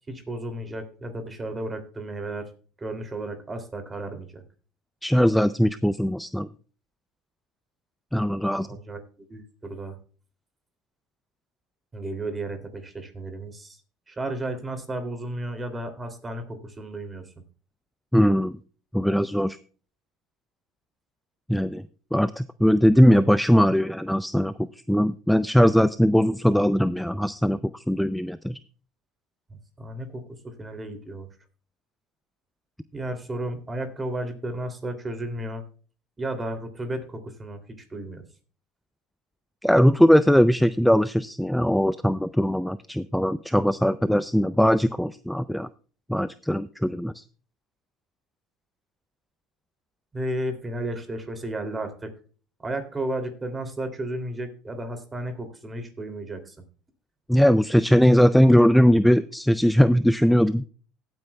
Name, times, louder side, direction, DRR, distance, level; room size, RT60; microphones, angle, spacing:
voice 1, 0.1-2.5 2.8-4.4 8.6-9.0 9.3-10.0 11.9-13.8 14.1-17.2 29.8-31.3 32.9-35.6 36.2-37.6 37.9-38.2 50.1-52.1 52.6-56.5, right 1 dB, 20° right, 7 dB, 2.7 m, -33 dB
voice 2, 5.0-6.5 8.1-8.7 18.1-18.6 18.9-19.6 21.5-21.8 22.1-28.6 39.6-45.7 46.1-47.2 57.3-60.6, equal, ahead, 14 dB, 0.4 m, -20 dB
16.5 x 9.0 x 2.3 m, 0.39 s
supercardioid pair, 90°, 0 cm